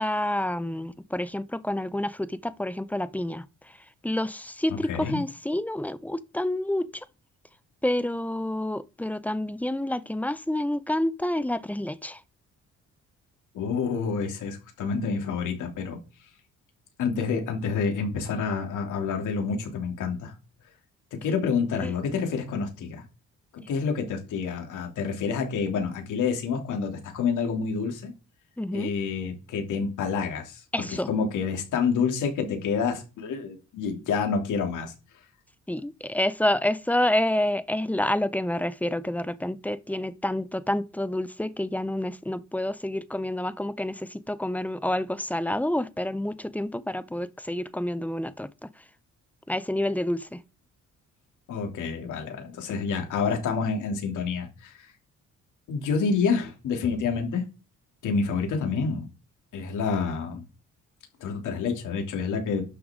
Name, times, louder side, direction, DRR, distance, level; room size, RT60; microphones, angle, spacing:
voice 1, 0.0-3.4 4.0-7.0 7.8-12.2 21.8-21.9 28.6-28.9 30.7-31.1 35.7-48.5 49.5-50.4, left 1 dB, 5° left, 0.7 m, -28 dB
voice 2, 4.7-5.2 13.5-16.0 17.0-20.3 21.1-23.0 23.5-28.1 28.7-34.9 51.5-54.9 55.7-57.4 58.0-59.1 59.5-60.4 61.2-62.6, left 5 dB, 80° left, 3.1 m, -28 dB
11.5 x 6.7 x 3.8 m
cardioid pair, 90°, 30 cm